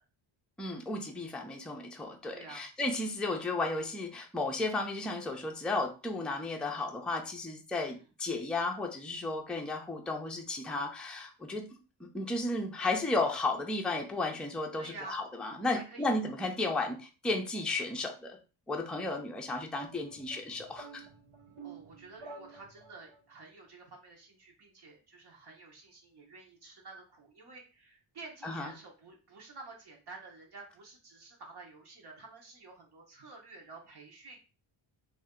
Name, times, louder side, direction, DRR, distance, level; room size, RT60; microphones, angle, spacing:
voice 1, 0.6-11.7 12.0-18.4 18.7-21.1 28.4-28.7, left 2 dB, ahead, 1 dB, 0.5 m, -34 dB
voice 2, 2.3-2.6 7.8-8.0 14.8-15.2 15.7-16.2 21.6-34.5, right 3 dB, 55° right, 0 dB, 1.1 m, -50 dB
sound 1, 19.7-23.2, right 4 dB, 85° right, 1.1 m, -50 dB
3.3 x 2.7 x 3.7 m, 0.33 s
cardioid pair, 120°, 46 cm